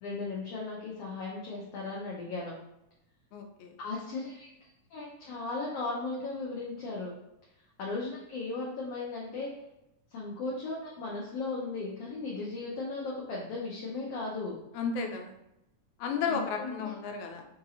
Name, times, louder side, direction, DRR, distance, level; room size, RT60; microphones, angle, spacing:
voice 1, 0.0-2.5 3.8-7.1 7.8-9.5 10.1-14.5 16.3-17.0, left 3 dB, 70° left, -4 dB, 1.5 m, -36 dB
voice 2, 3.3-3.7 14.7-15.3 16.0-17.5, left 5 dB, 90° left, 3 dB, 2.0 m, -33 dB
4.9 x 2.6 x 2.7 m, 0.85 s
omnidirectional pair, 3.3 m